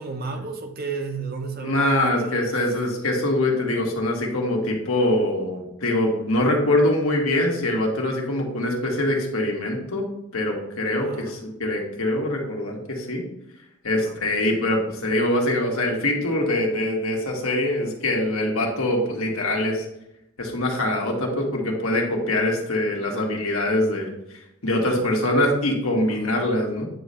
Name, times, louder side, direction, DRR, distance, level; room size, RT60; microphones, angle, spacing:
voice 1, 0.0-2.5 11.0-11.3 14.0-14.3 24.8-25.1 26.1-26.4, right 4 dB, 45° right, 4 dB, 1.0 m, -33 dB
voice 2, 1.6-10.1 10.3-13.2 13.8-19.8 20.4-24.1 24.6-26.9, left 1 dB, 70° left, 0 dB, 1.7 m, -23 dB
9.3 x 3.2 x 5.5 m, 0.84 s
head